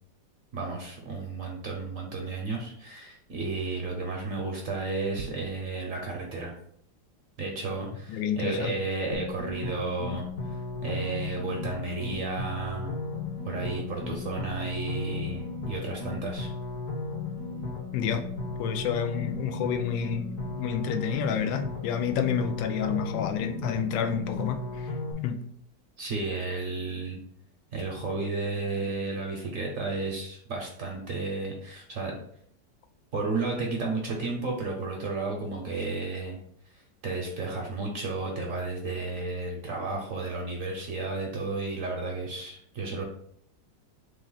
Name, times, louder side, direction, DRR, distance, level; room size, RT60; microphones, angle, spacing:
voice 1, 0.5-6.5 7.4-12.9 13.4-16.5 26.0-27.2 27.7-32.2 33.1-36.4 37.0-43.0, right 3 dB, 60° right, 0 dB, 1.0 m, -33 dB
voice 2, 8.1-8.7 17.9-18.2 18.6-24.9 25.2-25.4, left 7 dB, 85° left, 6 dB, 1.3 m, -29 dB
sound 1, 9.1-25.1, left 3 dB, 50° left, 1.4 m, -35 dB
3.8 x 3.2 x 3.9 m, 0.66 s
omnidirectional pair, 2.0 m